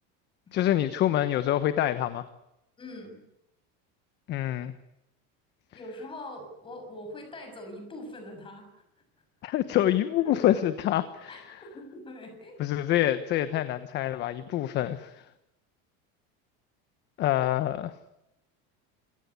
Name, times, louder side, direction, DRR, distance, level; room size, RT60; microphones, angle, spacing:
voice 1, 0.5-2.2 4.3-4.7 9.4-11.4 12.6-15.3 17.2-17.9, left 12 dB, 35° left, 12 dB, 1.1 m, -26 dB
voice 2, 2.8-3.2 5.7-8.8 10.2-10.4 11.3-12.6, left 1 dB, 15° left, 6 dB, 6.7 m, -43 dB
27.5 x 18.0 x 9.7 m, 0.89 s
cardioid pair, 175°, 31 cm